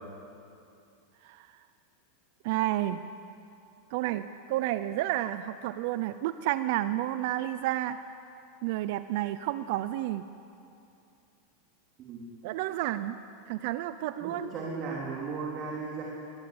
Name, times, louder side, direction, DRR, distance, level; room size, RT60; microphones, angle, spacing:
voice 1, 2.4-3.0 3.9-8.0 8.6-10.2 12.4-13.1 13.5-14.5, right 14 dB, 55° right, 12 dB, 0.7 m, -30 dB
voice 2, 14.2-16.0, right 4 dB, 35° right, -3 dB, 3.8 m, -36 dB
22.0 x 22.0 x 8.0 m, 2.6 s
supercardioid pair, 155°, 0 cm